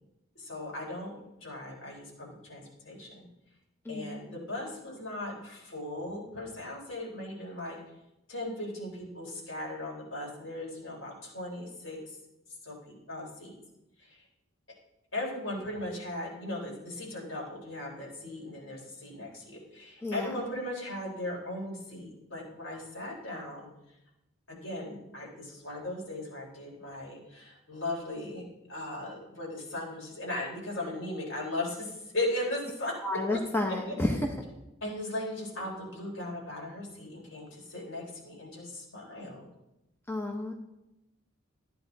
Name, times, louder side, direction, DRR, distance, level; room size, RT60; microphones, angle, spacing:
voice 1, 0.4-3.3 3.9-7.8 8.3-12.2 12.6-13.5 14.0-14.2 15.1-23.7 24.5-32.9 33.3-33.4 33.8-34.2 34.8-39.4, left 1 dB, 70° left, -2 dB, 3.9 m, -38 dB
voice 2, 3.9-4.2 20.0-20.3 33.0-34.3 40.1-40.5, left 2 dB, 10° left, 1 dB, 1.0 m, -30 dB
14.0 x 9.2 x 4.0 m, 0.92 s
head